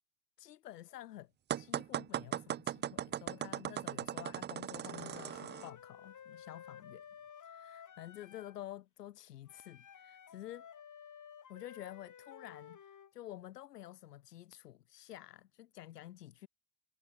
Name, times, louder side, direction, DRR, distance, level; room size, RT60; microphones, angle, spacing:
voice 1, 0.4-7.0 7.3-10.7 11.5-16.5, left 13 dB, 85° left, 3.6 m, -50 dB
sound 1, 1.5-5.7, right 11 dB, 25° right, 0.3 m, -38 dB
Wind instrument woodwind instrument, 4.8-8.6 9.5-13.1, left 8 dB, 40° left, 4.3 m, -54 dB
hypercardioid pair, 60°, 46 cm